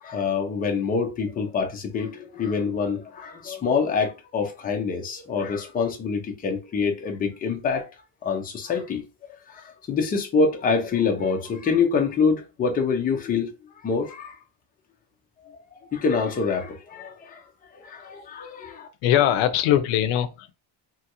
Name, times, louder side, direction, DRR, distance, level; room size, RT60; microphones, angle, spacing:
voice 1, 0.0-7.9 8.2-9.0 9.5-13.5 13.8-14.4 15.7-17.4 17.7-18.9, left 5 dB, 20° left, 0.4 m, -26 dB
voice 2, 19.0-20.5, left 11 dB, 70° left, 0.6 m, -21 dB
3.0 x 2.3 x 2.8 m
cardioid pair, 175°, 48 cm